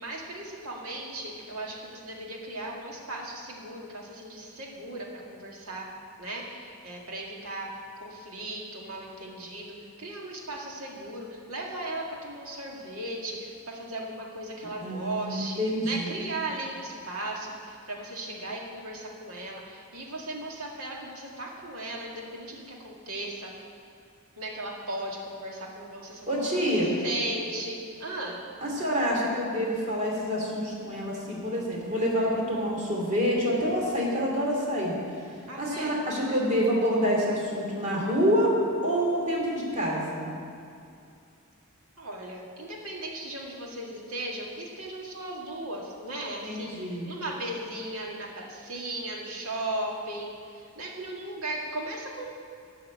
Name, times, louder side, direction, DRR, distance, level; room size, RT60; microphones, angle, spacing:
voice 1, 0.0-5.9 6.2-7.7 8.0-23.5 24.4-26.7 27.0-28.4 35.5-36.0 42.0-52.3, right 1 dB, 80° right, -1 dB, 2.0 m, -37 dB
voice 2, 14.8-16.4 26.3-26.9 28.6-35.0 35.6-38.5 38.8-40.3 46.4-47.1, equal, 35° right, -3 dB, 2.7 m, -27 dB
12.5 x 5.6 x 8.5 m, 2.5 s
head